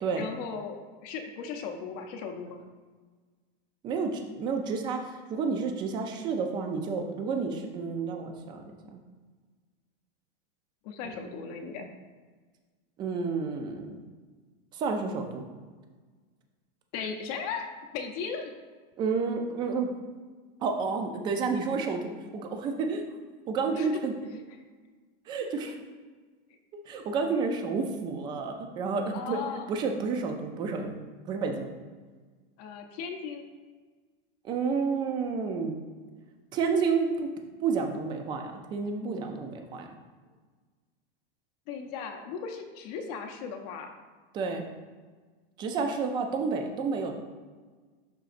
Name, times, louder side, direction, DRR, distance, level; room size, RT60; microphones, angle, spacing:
voice 1, 0.2-2.6 10.8-11.9 16.9-17.7 17.9-18.5 23.7-23.9 25.4-25.5 29.1-29.7 32.6-33.5 41.7-43.9, left 6 dB, 40° left, 4 dB, 0.6 m, -37 dB
voice 2, 3.8-5.0 5.3-9.0 11.2-11.3 13.0-14.0 14.7-15.4 19.0-19.9 20.6-22.0 22.3-23.0 23.5-24.1 25.3-25.8 26.9-29.4 29.7-31.0 31.3-31.7 34.4-35.8 36.5-37.3 37.6-39.9 44.3-44.6 45.6-47.1, right 5 dB, 15° right, 4 dB, 0.3 m, -30 dB
11.0 x 3.9 x 2.5 m, 1.4 s
supercardioid pair, 165°, 30 cm